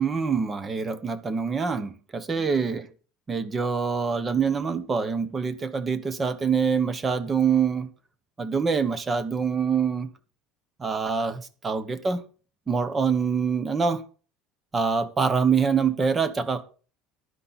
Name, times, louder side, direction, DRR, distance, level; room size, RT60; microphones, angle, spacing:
voice 1, 0.0-2.9 3.3-7.9 8.4-10.1 10.8-12.2 12.7-14.0 14.7-16.6, right 5 dB, 20° right, 1.1 m, -25 dB
12.0 x 10.0 x 4.2 m
cardioid pair, 150°, 0 cm